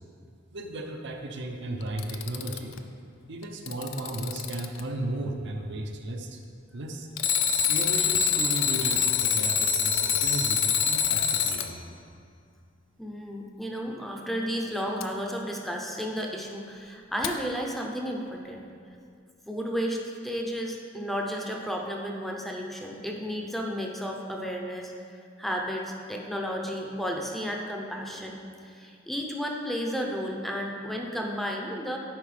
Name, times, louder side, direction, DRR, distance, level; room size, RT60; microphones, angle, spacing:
voice 1, 0.5-2.8 3.3-6.4 6.7-7.1 7.7-11.8, right 1 dB, 60° right, 3 dB, 0.7 m, -35 dB
Alarm, 1.8-2.8 3.4-4.8 7.2-11.7 15.0-15.1 17.2-17.3, left 7 dB, 70° left, 0.4 m, -25 dB
voice 2, 13.0-18.6 19.5-24.9 25.4-32.0, equal, ahead, 0 dB, 0.7 m, -33 dB
10.5 x 4.8 x 3.3 m, 2.3 s
head